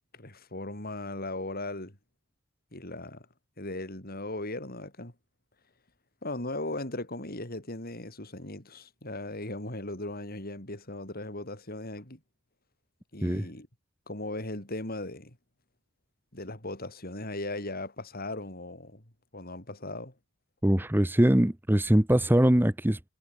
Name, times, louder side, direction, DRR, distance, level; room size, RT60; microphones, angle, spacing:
voice 1, 0.1-2.0 2.7-3.3 3.6-5.1 6.2-12.2 13.1-13.7 14.1-15.4 16.3-20.1, left 2 dB, 50° left, 7.6 m, -38 dB
voice 2, 20.6-23.1, right 1 dB, 10° right, 0.8 m, -22 dB
head